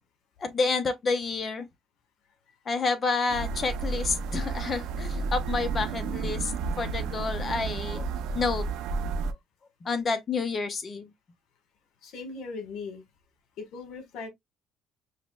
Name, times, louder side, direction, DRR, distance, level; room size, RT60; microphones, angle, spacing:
voice 1, 0.4-1.7 2.7-8.0 8.3-8.6 9.8-11.1, left 4 dB, 35° left, 0.8 m, -29 dB
sound 1, 3.3-9.3, right 4 dB, 85° right, 0.5 m, -31 dB
voice 2, 12.0-13.0 13.6-14.3, left 4 dB, 70° left, 1.4 m, -38 dB
5.7 x 3.0 x 2.2 m
cardioid pair, 120°, 0 cm